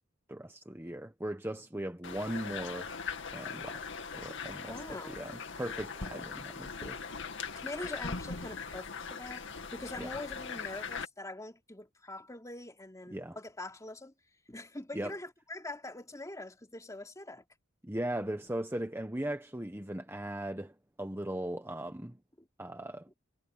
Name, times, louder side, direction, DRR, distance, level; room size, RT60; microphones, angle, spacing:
voice 1, 0.3-2.9 3.3-3.8 4.1-7.0 10.0-10.1 13.1-13.4 14.9-15.1 17.8-22.2 22.6-23.1, right 1 dB, 10° right, 1.3 m, -38 dB
sound 1, 2.0-11.1, left 5 dB, 65° left, 2.3 m, -40 dB
voice 2, 4.7-5.2 7.6-9.5 9.7-14.1 14.5-17.4, left 2 dB, 15° left, 3.1 m, -43 dB
head